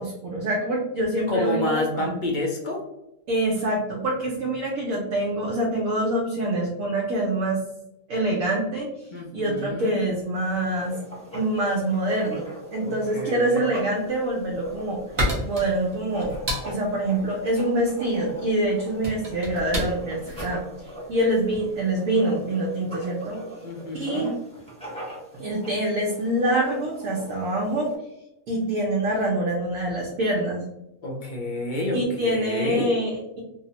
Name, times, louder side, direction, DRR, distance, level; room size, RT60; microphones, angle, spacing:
voice 1, 0.0-2.2 3.3-7.6 8.1-8.9 9.3-11.0 11.3-15.0 15.4-20.6 21.1-23.4 23.9-24.3 25.3-27.9 28.5-30.6 31.9-33.4, right 1 dB, 70° right, -2 dB, 1.0 m, -25 dB
voice 2, 1.3-2.8 9.1-10.0 12.8-13.6 23.6-24.4 31.0-32.9, left 2 dB, 50° left, 0 dB, 0.6 m, -29 dB
Writing, 10.3-27.9, right 1 dB, 5° left, 0.6 m, -40 dB
sound 1, 14.5-21.7, equal, 35° right, 0.8 m, -32 dB
3.2 x 2.0 x 2.8 m, 0.87 s
omnidirectional pair, 1.5 m